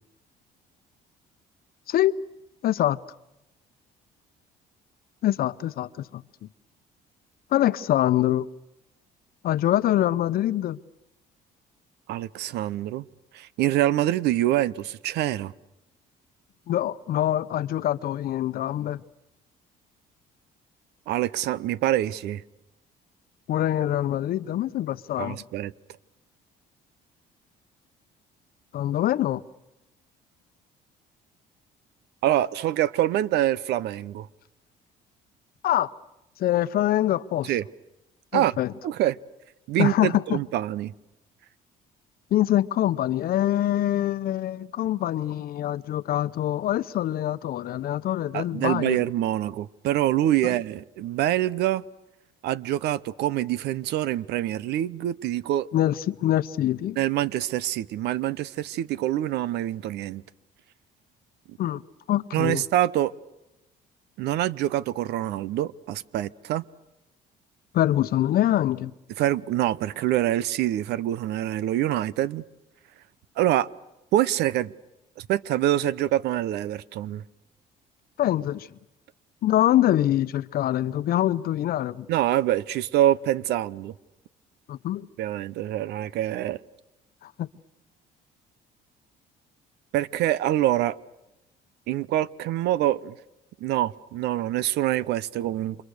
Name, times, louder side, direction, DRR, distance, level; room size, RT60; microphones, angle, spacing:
voice 1, 2.6-3.0 5.2-6.2 7.5-8.5 9.4-10.8 16.7-19.0 23.5-25.4 28.7-29.4 35.6-35.9 36.4-37.5 38.3-38.7 39.8-40.4 42.3-49.0 50.4-50.5 55.7-57.0 61.6-61.8 62.1-62.6 67.7-68.9 78.2-78.7 79.4-82.1 84.7-85.1 87.2-87.5, left 13 dB, 60° left, 0.9 m, -24 dB
voice 2, 12.1-13.0 13.3-15.5 21.1-22.4 25.2-25.7 32.2-34.3 37.4-37.6 38.3-38.5 38.8-39.2 39.7-40.9 48.3-51.8 52.4-55.7 57.0-60.2 61.5-61.6 62.3-63.1 64.2-66.6 69.2-72.4 73.4-73.7 74.1-74.7 75.2-77.2 82.1-83.9 85.2-86.6 89.9-91.0 91.9-93.1 93.6-95.8, right 13 dB, 80° right, 0.8 m, -25 dB
29.5 x 26.0 x 6.6 m
cardioid pair, 110°, 17 cm